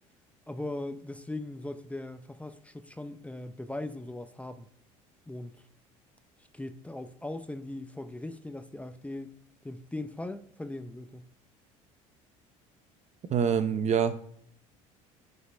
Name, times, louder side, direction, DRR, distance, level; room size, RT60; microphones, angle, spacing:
voice 1, 0.5-4.7 5.3-5.5 6.5-9.3 9.6-11.3, left 2 dB, 10° left, 0.6 m, -39 dB
voice 2, 13.3-14.2, right 7 dB, 40° right, 0.8 m, -25 dB
11.0 x 5.3 x 3.4 m
hypercardioid pair, 80°, 17 cm